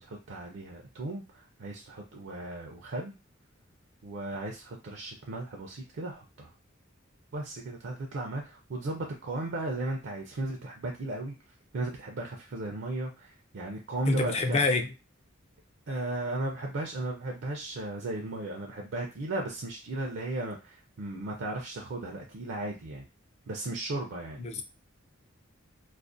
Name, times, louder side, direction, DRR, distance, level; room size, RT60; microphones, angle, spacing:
voice 1, 0.0-3.2 4.0-6.5 7.3-11.3 11.7-14.7 15.9-23.0 23.5-24.4, right 2 dB, 65° right, 2 dB, 0.4 m, -36 dB
voice 2, 14.1-14.9 24.4-24.6, left 3 dB, 30° left, 6 dB, 0.3 m, -26 dB
2.4 x 2.0 x 2.5 m, 0.28 s
head